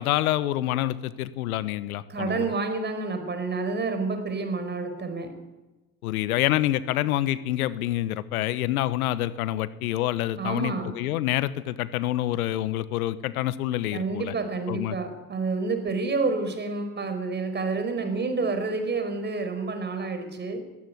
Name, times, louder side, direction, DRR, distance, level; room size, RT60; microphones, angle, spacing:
voice 1, 0.0-2.4 6.0-14.3 14.7-15.0, left 14 dB, 70° left, 16 dB, 1.2 m, -27 dB
voice 2, 2.1-5.4 10.4-11.0 13.9-20.6, right 3 dB, 25° right, 8 dB, 4.9 m, -29 dB
20.5 x 16.0 x 9.5 m, 1.1 s
hypercardioid pair, 85°, 45 cm